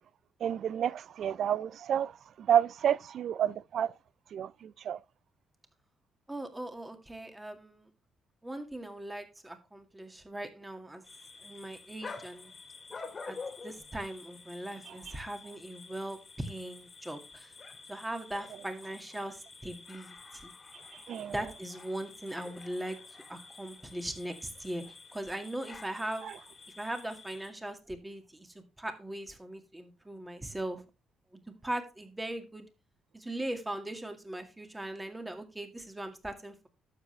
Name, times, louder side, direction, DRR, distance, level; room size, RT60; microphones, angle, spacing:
voice 1, 0.4-3.9 4.3-5.0 14.9-15.0 20.9-21.4 26.2-26.4, right 9 dB, 65° right, 0.4 m, -30 dB
voice 2, 6.3-7.9 8.4-11.0 11.4-12.5 13.3-13.4 13.6-17.5 17.9-20.5 21.3-23.0 23.3-24.8 25.1-26.3 26.8-30.8 31.6-32.7 33.1-36.7, right 1 dB, 10° right, 2.1 m, -39 dB
sound 1, 11.0-27.5, left 4 dB, 35° left, 2.1 m, -49 dB
12.0 x 7.4 x 3.3 m
cardioid pair, 90°, 0 cm